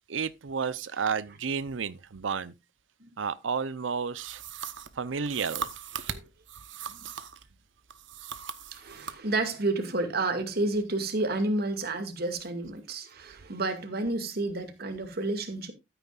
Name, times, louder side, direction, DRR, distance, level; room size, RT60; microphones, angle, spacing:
voice 1, 0.1-2.5 3.2-4.4 4.9-5.7, right 6 dB, 90° right, 0.6 m, -31 dB
sound 1, 4.2-7.5 7.9-9.2, right 7 dB, 70° right, 1.0 m, -39 dB
voice 2, 8.7-15.7, right 2 dB, 55° right, 2.1 m, -30 dB
13.0 x 9.1 x 2.4 m
head